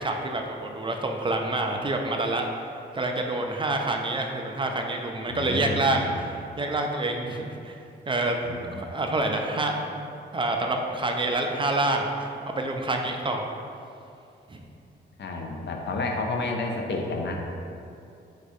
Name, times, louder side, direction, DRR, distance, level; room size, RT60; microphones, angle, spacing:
voice 1, 0.0-2.5 2.9-7.8 8.1-9.9 10.3-13.5 14.5-14.6, right 2 dB, 25° right, 2 dB, 0.4 m, -27 dB
voice 2, 5.3-6.1 8.4-8.6 15.2-17.4, left 3 dB, 65° left, 2 dB, 0.6 m, -30 dB
4.8 x 4.0 x 2.6 m, 2.6 s
cardioid pair, 90°, 19 cm